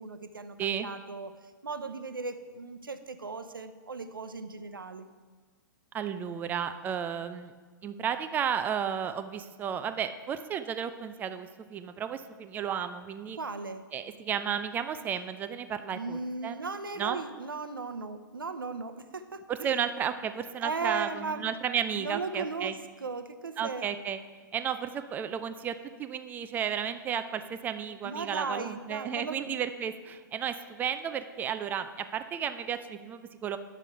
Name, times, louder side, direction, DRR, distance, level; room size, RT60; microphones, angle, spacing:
voice 1, 0.0-1.3 1.6-5.1 13.4-13.8 15.9-19.7 20.6-21.5 22.0-22.8 23.0-23.9 28.0-29.6, right 4 dB, 80° right, 10 dB, 0.7 m, -37 dB
voice 2, 5.9-7.5 7.8-13.4 13.9-16.6 17.0-17.2 19.5-22.8 23.6-24.2 24.5-33.6, right 8 dB, 15° right, 10 dB, 0.3 m, -33 dB
9.7 x 6.9 x 4.6 m, 1.5 s
figure-of-eight pair, 115°, 11 cm